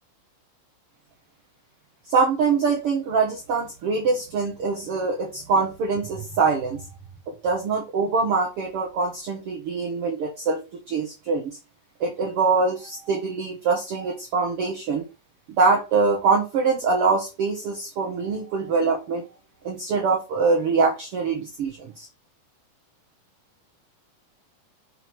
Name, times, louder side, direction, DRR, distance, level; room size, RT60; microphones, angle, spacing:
voice 1, 2.1-6.8 7.3-11.6 12.0-15.1 15.5-19.3 19.6-22.1, right 4 dB, 60° right, -1 dB, 1.7 m, -24 dB
5.9 x 3.9 x 4.7 m, 0.28 s
omnidirectional pair, 3.8 m